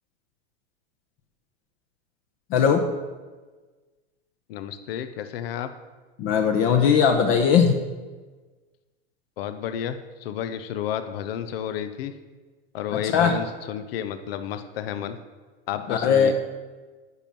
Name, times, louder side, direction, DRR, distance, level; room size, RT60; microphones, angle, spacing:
voice 1, 2.5-2.8 6.2-7.8 12.9-13.3 15.9-16.3, left 7 dB, 40° left, 4 dB, 1.0 m, -19 dB
voice 2, 4.5-5.7 9.4-12.1 12.7-15.2 15.7-16.3, left 9 dB, 65° left, 10 dB, 0.9 m, -31 dB
9.8 x 5.5 x 7.5 m, 1.3 s
hypercardioid pair, 125°, 31 cm